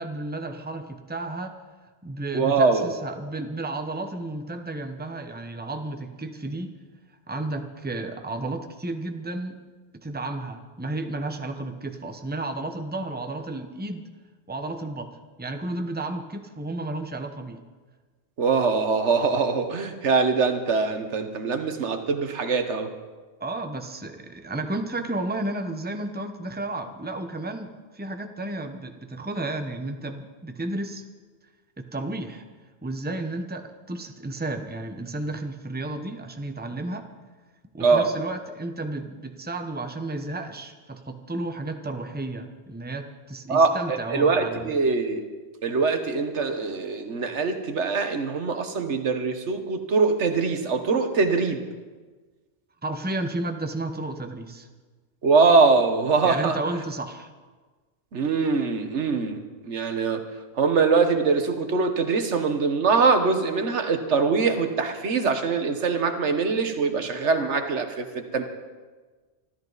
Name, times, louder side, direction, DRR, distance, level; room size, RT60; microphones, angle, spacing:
voice 1, 0.0-1.6 2.0-6.7 7.3-9.6 10.0-14.1 14.5-17.6 23.4-31.0 31.8-32.4 32.8-37.1 37.7-44.7 52.8-54.7 56.2-57.3, right 2 dB, 10° right, 6 dB, 0.9 m, -32 dB
voice 2, 2.3-2.9 18.4-22.9 37.8-38.1 43.5-45.2 45.6-51.6 55.2-56.6 58.1-60.2 60.6-68.4, right 4 dB, 90° right, 7 dB, 1.5 m, -23 dB
24.5 x 13.5 x 4.1 m, 1.4 s
omnidirectional pair, 1.1 m